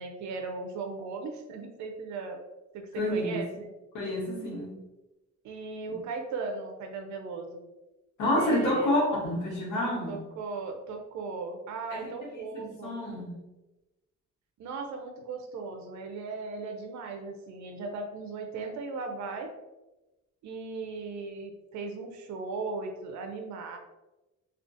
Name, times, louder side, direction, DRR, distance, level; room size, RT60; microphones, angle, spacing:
voice 1, 0.0-2.4 2.7-3.7 5.4-7.6 8.4-8.9 10.1-13.0 14.6-19.5 20.4-23.8, right 4 dB, 70° right, 5 dB, 0.5 m, -37 dB
voice 2, 2.9-3.4 3.9-4.8 8.2-10.2 11.9-12.1 12.5-13.4, left 1 dB, 80° left, -4 dB, 1.1 m, -28 dB
2.4 x 2.3 x 2.6 m, 1.1 s
cardioid pair, 90°, 30 cm